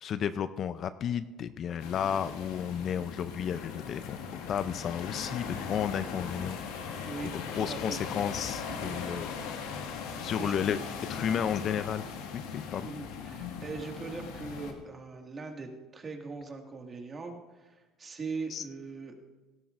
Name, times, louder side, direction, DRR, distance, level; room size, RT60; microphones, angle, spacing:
voice 1, 0.0-6.6 7.3-9.3 10.2-12.0 12.3-12.9 18.5-18.6, left 8 dB, 45° left, 13 dB, 0.4 m, -32 dB
sound 1, 1.8-14.7, left 6 dB, 90° left, 1.6 m, -39 dB
voice 2, 7.1-8.0 8.7-8.9 10.4-10.6 12.8-19.1, right 4 dB, 30° right, 3 dB, 1.9 m, -41 dB
17.5 x 13.0 x 2.5 m, 1.2 s
supercardioid pair, 105°, 0 cm